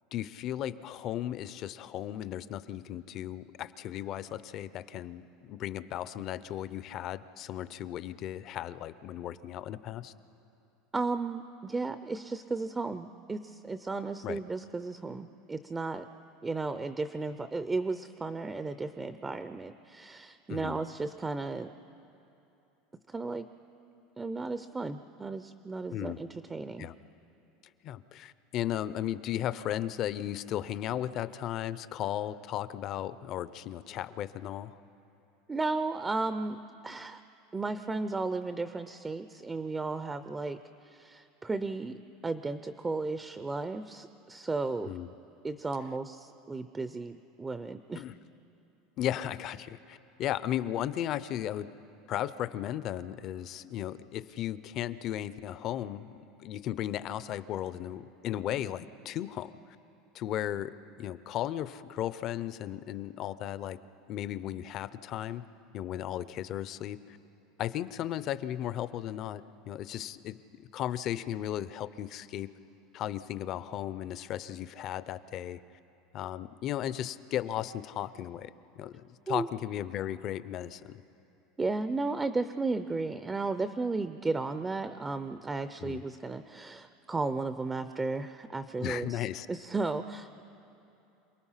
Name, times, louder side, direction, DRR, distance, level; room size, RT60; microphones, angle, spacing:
voice 1, 0.1-10.1 14.2-14.4 20.5-20.8 25.9-26.2 26.8-26.9 27.8-34.8 44.8-45.1 48.0-48.2 49.0-51.7 52.1-59.5 60.1-63.8 64.1-65.4 65.7-67.2 67.6-70.4 70.7-72.5 72.9-75.6 76.1-81.0 85.8-86.0 88.8-89.5, left 11 dB, 40° left, 16 dB, 0.5 m, -35 dB
voice 2, 10.9-16.1 16.4-21.7 23.1-23.5 24.2-26.9 35.5-37.2 37.5-40.6 40.9-44.9 45.4-48.0 79.3-79.5 81.6-90.4, right 3 dB, 10° right, 11 dB, 0.5 m, -34 dB
27.5 x 19.0 x 5.7 m, 2.8 s
supercardioid pair, 155°, 0 cm